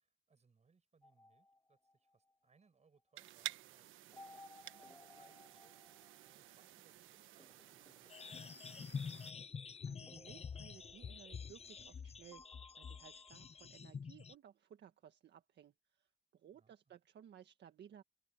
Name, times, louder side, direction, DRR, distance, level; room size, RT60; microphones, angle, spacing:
voice 1, 0.0-5.7 6.2-9.3 16.5-16.9, right 5 dB, 35° right, 7.4 m, -74 dB
sound 1, 1.0-2.3 4.1-6.7 7.4-9.3 10.1-12.0 12.3-13.7, left 2 dB, 15° left, 3.5 m, -62 dB
sound 2, 3.2-9.3, right 14 dB, 90° right, 1.2 m, -52 dB
sound 3, 8.1-14.3, left 6 dB, 30° left, 0.8 m, -48 dB
voice 2, 9.9-12.4 12.8-18.0, right 9 dB, 60° right, 1.7 m, -59 dB
open air
cardioid pair, 90°, 20 cm